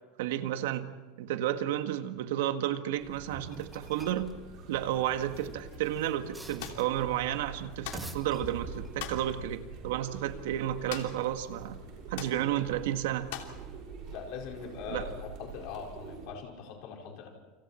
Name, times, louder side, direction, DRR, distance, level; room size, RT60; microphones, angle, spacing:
voice 1, 0.2-0.9 1.2-4.3 4.7-11.8 12.1-13.3 14.9-15.0, right 12 dB, 80° right, 8 dB, 1.7 m, -32 dB
sound 1, 3.0-16.3, right 4 dB, 40° right, 6.8 m, -46 dB
sound 2, 3.3-4.3 5.2-7.0 7.7-9.0, right 1 dB, 5° right, 1.5 m, -47 dB
sound 3, 6.6-6.8 7.8-8.1 9.0-9.3 10.9-11.3 11.5-11.6 12.1-12.4 13.3-13.6, left 11 dB, 75° left, 3.0 m, -40 dB
voice 2, 14.1-17.3, left 6 dB, 50° left, 0 dB, 5.2 m, -41 dB
29.5 x 26.5 x 4.4 m, 1.3 s
supercardioid pair, 175°, 0 cm